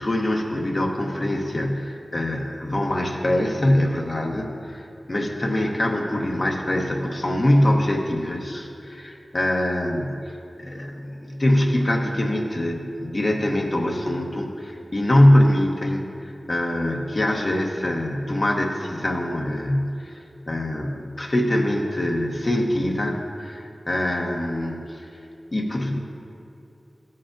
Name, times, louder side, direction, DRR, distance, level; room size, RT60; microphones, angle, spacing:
voice 1, 0.0-16.1 16.5-20.2 20.5-25.0 25.5-26.0, left 1 dB, 45° left, 1 dB, 0.8 m, -23 dB
12.5 x 7.6 x 2.5 m, 2.6 s
wide cardioid pair, 55°, 0 cm